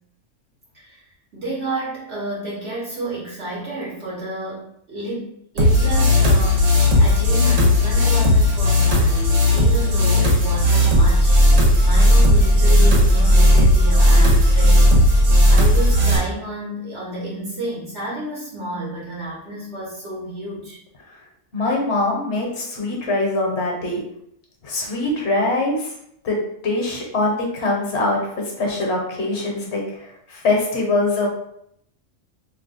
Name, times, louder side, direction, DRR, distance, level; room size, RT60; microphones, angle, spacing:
voice 1, 1.3-15.1 15.5-20.8 21.6-21.7, right 1 dB, 60° right, -6 dB, 1.2 m, -31 dB
sound 1, 5.6-16.2, left 1 dB, 80° right, 1.2 m, -15 dB
voice 2, 21.5-24.0 24.6-25.9 26.2-26.4 26.6-28.2 28.6-30.0 30.3-31.3, left 2 dB, 60° left, -1 dB, 1.1 m, -22 dB
2.8 x 2.2 x 3.9 m, 0.74 s
omnidirectional pair, 1.3 m